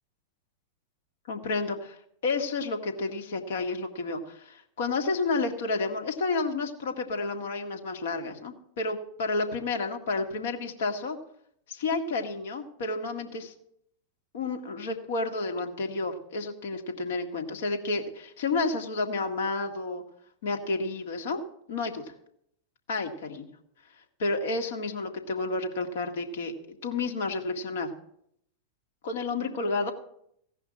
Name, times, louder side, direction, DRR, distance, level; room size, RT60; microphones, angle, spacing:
voice 1, 1.3-2.0 2.2-11.2 11.7-13.5 14.3-20.0 20.4-21.4 21.7-22.1 22.9-23.5 24.2-26.5 26.8-27.9 29.0-29.9, left 3 dB, 60° left, 5 dB, 1.8 m, -30 dB
16.5 x 5.7 x 8.5 m, 0.71 s
figure-of-eight pair, 90°, 0 cm